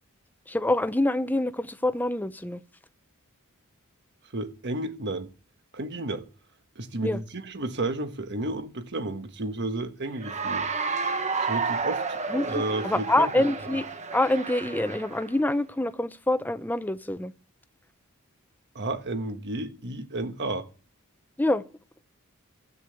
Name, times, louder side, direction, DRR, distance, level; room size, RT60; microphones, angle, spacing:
voice 1, 0.5-2.6 7.0-7.2 12.3-13.9 14.1-17.3 21.4-21.6, left 1 dB, 10° left, 0.6 m, -26 dB
voice 2, 4.3-5.3 5.7-6.2 6.7-10.7 11.4-12.2 12.4-13.3 18.7-20.7, right 2 dB, 55° right, 1.3 m, -32 dB
Cheering / Applause, 10.2-15.3, right 4 dB, 30° right, 1.1 m, -31 dB
12.5 x 8.6 x 7.9 m
head